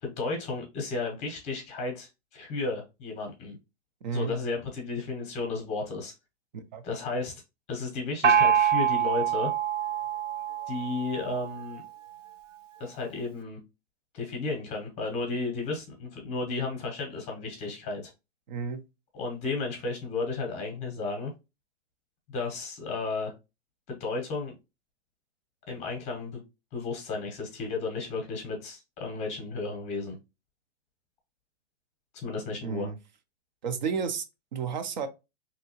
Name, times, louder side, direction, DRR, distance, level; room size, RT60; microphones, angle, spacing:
voice 1, 0.0-3.6 4.1-6.1 6.8-7.3 7.7-9.5 10.7-11.8 12.8-13.6 14.1-18.1 19.1-21.3 22.3-23.3 23.9-24.5 25.7-26.4 26.7-30.2 32.1-32.9, left 3 dB, 20° left, 0.8 m, -33 dB
voice 2, 4.0-4.3 6.7-6.8 18.5-18.8 32.6-32.9 33.6-34.3 34.5-35.1, right 6 dB, 40° right, 0.4 m, -31 dB
Gong, 8.2-11.7, right 8 dB, 75° right, 0.8 m, -25 dB
3.2 x 2.8 x 2.8 m
hypercardioid pair, 160°, 37 cm